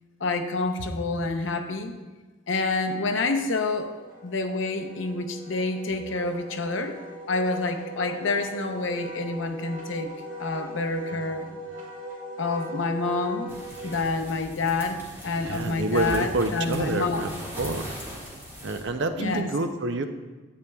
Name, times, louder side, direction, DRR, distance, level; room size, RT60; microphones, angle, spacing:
voice 1, 0.2-1.9 2.5-3.9 4.2-7.0 7.3-10.1 10.4-11.5 12.4-13.5 13.8-17.3 19.2-19.5, left 3 dB, 75° left, 6 dB, 0.7 m, -28 dB
Wind instrument woodwind instrument, 3.4-14.2, right 1 dB, 85° right, 2.7 m, -40 dB
sound 1, 13.5-18.8, equal, 10° right, 1.6 m, -40 dB
voice 2, 15.4-17.3 17.6-17.9 18.6-20.1, right 2 dB, 65° right, 7 dB, 0.6 m, -28 dB
11.0 x 8.4 x 2.3 m, 1.3 s
head